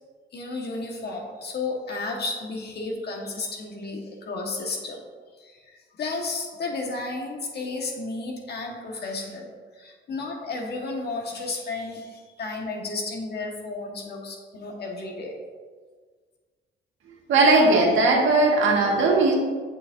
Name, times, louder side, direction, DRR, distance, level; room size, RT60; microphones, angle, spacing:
voice 1, 0.3-5.0 5.4-5.6 6.0-9.5 9.8-15.4, left 3 dB, 55° left, 0 dB, 1.6 m, -32 dB
voice 2, 17.3-19.3, right 2 dB, 75° right, -2 dB, 1.9 m, -18 dB
8.3 x 6.7 x 2.7 m, 1.5 s
cardioid pair, 90°, 20 cm